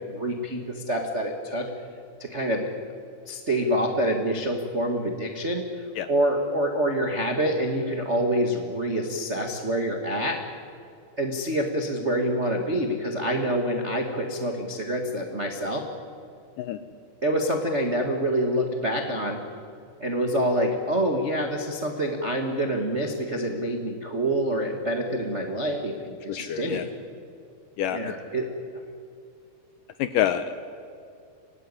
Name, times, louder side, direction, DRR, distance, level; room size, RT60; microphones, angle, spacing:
voice 1, 0.1-1.7 2.2-2.7 3.3-10.4 11.2-15.8 17.2-19.4 20.0-26.9 27.8-28.5, right 1 dB, 85° right, 2 dB, 0.6 m, -26 dB
voice 2, 26.4-26.8 27.8-28.1 30.0-30.5, left 10 dB, 75° left, 10 dB, 2.0 m, -26 dB
25.0 x 18.5 x 9.8 m, 2.4 s
omnidirectional pair, 4.6 m